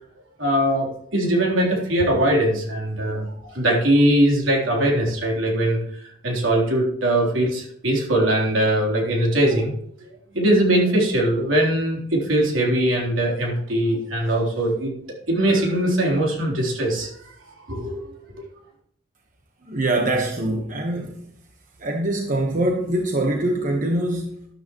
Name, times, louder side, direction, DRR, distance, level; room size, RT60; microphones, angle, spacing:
voice 1, 0.4-5.8 6.2-9.7 10.0-10.1 10.3-14.9 15.3-17.1 17.7-18.0, right 1 dB, 75° right, -2 dB, 3.6 m, -21 dB
voice 2, 19.6-21.2 21.8-24.5, right 1 dB, 45° right, 1 dB, 1.2 m, -23 dB
12.5 x 12.0 x 3.1 m, 0.67 s
head